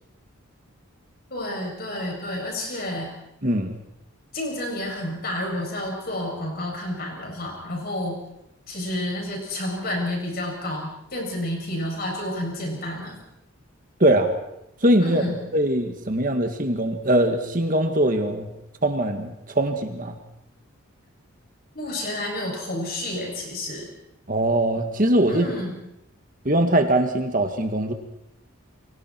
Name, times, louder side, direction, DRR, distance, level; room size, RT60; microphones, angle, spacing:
voice 1, 1.3-3.2 4.3-8.2 8.7-13.2 15.0-15.4 21.7-23.9 25.3-25.8, left 1 dB, 45° left, 0 dB, 7.8 m, -30 dB
voice 2, 3.4-3.7 14.0-14.3 14.8-15.2 15.5-18.5 18.8-20.2 24.3-25.5 26.5-27.9, right 1 dB, 40° right, 5 dB, 1.9 m, -21 dB
30.0 x 24.5 x 4.6 m, 0.82 s
head